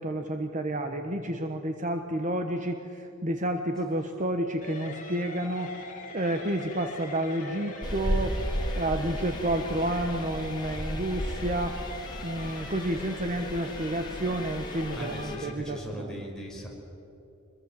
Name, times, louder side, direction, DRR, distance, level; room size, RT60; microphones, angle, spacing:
voice 1, 0.0-5.8 6.1-11.8 12.2-16.1, right 1 dB, 35° right, 6 dB, 1.1 m, -30 dB
voice 2, 3.7-4.2 15.0-16.7, equal, 5° left, -3 dB, 5.3 m, -40 dB
sound 1, 4.6-15.5, left 2 dB, 35° left, 2.8 m, -42 dB
sound 2, 7.8-15.4, equal, 20° left, 2.1 m, -35 dB
25.5 x 21.5 x 7.6 m, 3.0 s
head